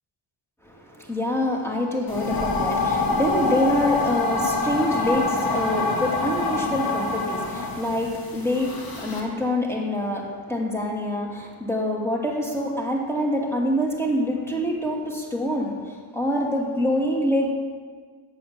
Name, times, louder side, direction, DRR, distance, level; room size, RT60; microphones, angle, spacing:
voice 1, 0.6-15.7 16.1-17.5, left 1 dB, 5° left, -1 dB, 2.5 m, -25 dB
sound 1, 2.1-9.2, left 3 dB, 45° left, 2.1 m, -26 dB
8.4 x 7.0 x 7.4 m, 1.5 s
cardioid pair, 55°, 48 cm